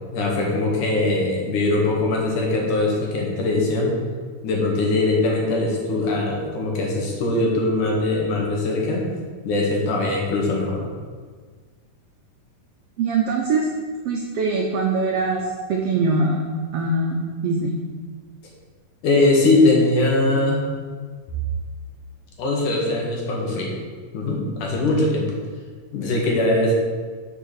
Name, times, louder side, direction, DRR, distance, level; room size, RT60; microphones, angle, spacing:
voice 1, 0.1-3.9 4.4-9.0 9.4-10.9 19.0-20.7 22.4-23.7 24.1-25.3 25.9-26.7, left 2 dB, 70° left, -2 dB, 3.2 m, -21 dB
voice 2, 13.0-13.7 14.0-16.4 16.7-17.7, right 3 dB, 75° right, 0 dB, 1.4 m, -22 dB
6.8 x 6.5 x 6.8 m, 1.5 s
omnidirectional pair, 3.8 m